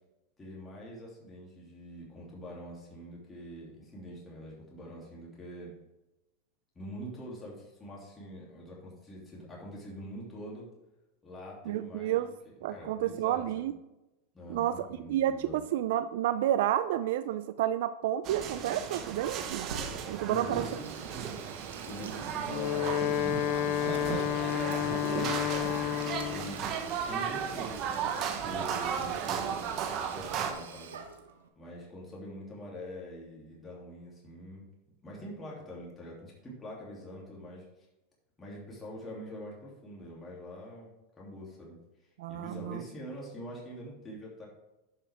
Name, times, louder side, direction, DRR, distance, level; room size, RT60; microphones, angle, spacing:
voice 1, 0.4-5.7 6.7-10.7 11.2-13.7 14.3-15.7 20.3-21.3 21.8-24.2 24.6-26.6 27.1-29.6 30.1-31.0 31.6-34.7 35.0-37.7 38.4-40.9 41.2-41.8 42.3-44.5, equal, 20° left, -5 dB, 2.8 m, -44 dB
voice 2, 11.7-12.3 12.6-13.7 14.5-19.7 20.1-20.6 42.2-42.8, right 12 dB, 70° right, 12 dB, 0.3 m, -30 dB
sound 1, 18.2-30.5, right 7 dB, 45° right, 1.1 m, -35 dB
Sink (filling or washing), 19.5-31.5, right 6 dB, 90° right, 1.1 m, -47 dB
Wind instrument woodwind instrument, 22.4-26.6, left 11 dB, 50° left, 0.6 m, -30 dB
10.5 x 5.8 x 3.5 m, 0.97 s
hypercardioid pair, 115°, 0 cm